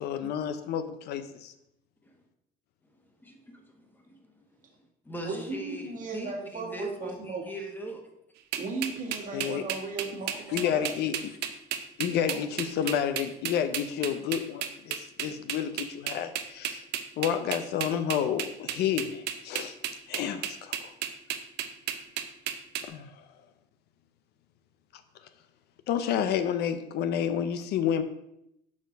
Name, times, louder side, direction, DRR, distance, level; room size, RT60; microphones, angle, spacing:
voice 1, 0.0-1.5 9.3-9.6 10.5-11.2 12.0-16.8 17.2-19.7 20.1-20.9 22.9-23.2 25.9-28.0, left 9 dB, 75° left, 10 dB, 0.7 m, -30 dB
voice 2, 3.2-3.6 4.1-4.2 5.1-5.8 6.1-8.0, equal, 10° left, 3 dB, 1.2 m, -40 dB
voice 3, 5.2-7.4 8.6-11.0 12.2-12.9, right 3 dB, 50° right, -1 dB, 1.9 m, -36 dB
sound 1, 8.5-22.8, right 10 dB, 85° right, 0.7 m, -33 dB
5.8 x 4.6 x 5.1 m, 0.79 s
cardioid pair, 110°, 17 cm